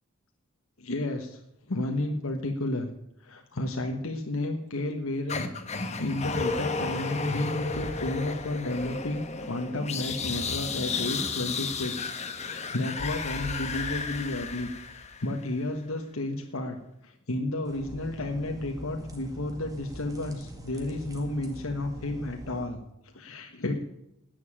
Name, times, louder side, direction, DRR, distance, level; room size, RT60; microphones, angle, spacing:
voice 1, 0.8-1.4 1.7-2.9 3.2-5.5 6.0-16.8 17.0-23.8, left 1 dB, 80° left, 3 dB, 1.3 m, -32 dB
sound 1, 5.3-15.5, left 4 dB, 30° left, 1.3 m, -33 dB
sound 2, 17.7-22.7, right 1 dB, 15° right, 2.0 m, -43 dB
11.0 x 9.4 x 8.8 m, 0.84 s
head